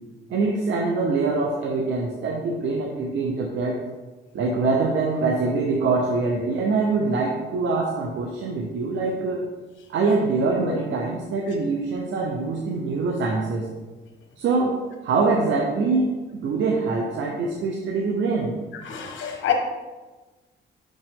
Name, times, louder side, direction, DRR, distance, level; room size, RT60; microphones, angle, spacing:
voice 1, 0.3-3.8 4.3-9.4 9.9-13.7 14.4-16.1 16.4-18.5, right 3 dB, 70° right, -1 dB, 0.9 m, -24 dB
voice 2, 18.8-19.5, left 10 dB, 75° left, 3 dB, 1.2 m, -26 dB
5.9 x 5.2 x 3.7 m, 1.2 s
cardioid pair, 90°, 20 cm